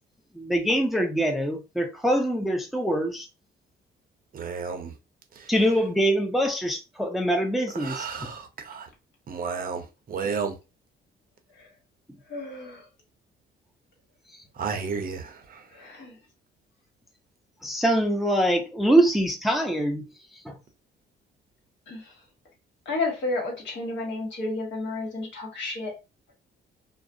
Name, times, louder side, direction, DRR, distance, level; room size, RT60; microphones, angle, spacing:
voice 1, 0.4-3.3 5.5-8.1 17.6-20.0 20.5-20.6, right 1 dB, ahead, 0.5 m, -24 dB
voice 2, 4.3-4.9 7.8-8.9 9.3-9.8 10.1-10.5 14.6-15.2, right 5 dB, 45° right, 0.6 m, -31 dB
voice 3, 12.3-12.9 15.7-16.2 21.9-22.1 22.8-25.9, left 2 dB, 65° left, 1.3 m, -31 dB
2.4 x 2.0 x 2.5 m
cardioid pair, 90°, 20 cm